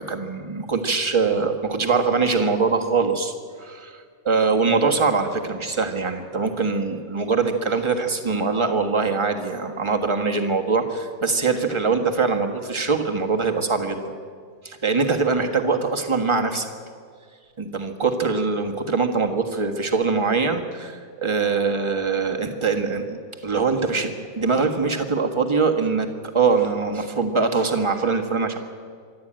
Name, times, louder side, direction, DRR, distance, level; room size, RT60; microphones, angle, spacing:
voice 1, 0.0-3.3 3.6-14.1 14.6-16.7 17.6-23.2 23.4-28.6, right 4 dB, 15° right, 3 dB, 1.4 m, -23 dB
26.0 x 11.5 x 9.0 m, 2.1 s
omnidirectional pair, 2.0 m